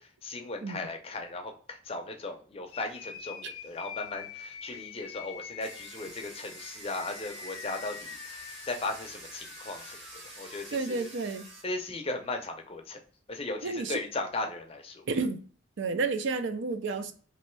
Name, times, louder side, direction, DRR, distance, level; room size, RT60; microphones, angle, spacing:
voice 1, 0.0-10.0 10.4-11.1 11.6-13.0 13.3-15.0, left 2 dB, 30° left, 0.5 m, -37 dB
sound 1, 2.7-10.6, left 8 dB, 90° left, 0.4 m, -46 dB
Domestic sounds home sounds, 5.6-11.6, right 2 dB, 30° right, 0.9 m, -47 dB
voice 2, 10.7-11.5 13.6-14.0 15.1-15.4 15.8-17.1, right 4 dB, 60° right, 0.4 m, -31 dB
3.1 x 2.6 x 3.0 m
head